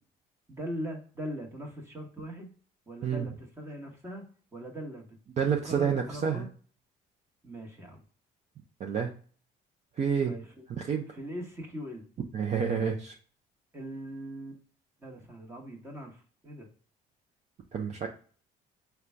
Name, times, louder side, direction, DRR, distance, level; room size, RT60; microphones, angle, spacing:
voice 1, 0.5-2.5 2.9-4.2 4.5-5.1 5.4-6.5 7.4-8.0 10.3-10.6 11.1-12.1 13.7-14.6 15.0-16.7, equal, 15° right, 1 dB, 1.1 m, -40 dB
voice 2, 5.4-6.5 8.8-9.1 10.0-10.3 10.8-11.1 12.3-13.1 17.7-18.1, right 7 dB, 40° right, 2 dB, 0.6 m, -29 dB
3.8 x 2.3 x 4.3 m, 0.42 s
cardioid pair, 110°, 17 cm